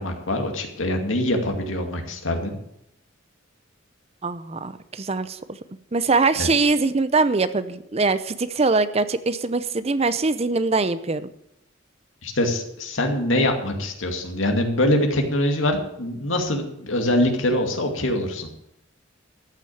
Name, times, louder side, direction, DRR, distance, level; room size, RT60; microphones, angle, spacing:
voice 1, 0.0-2.5 6.4-6.5 12.2-18.5, left 1 dB, 80° left, 4 dB, 2.3 m, -24 dB
voice 2, 4.2-5.6 5.9-11.3, right 3 dB, 30° right, 13 dB, 0.6 m, -22 dB
13.5 x 6.3 x 8.6 m, 0.78 s
head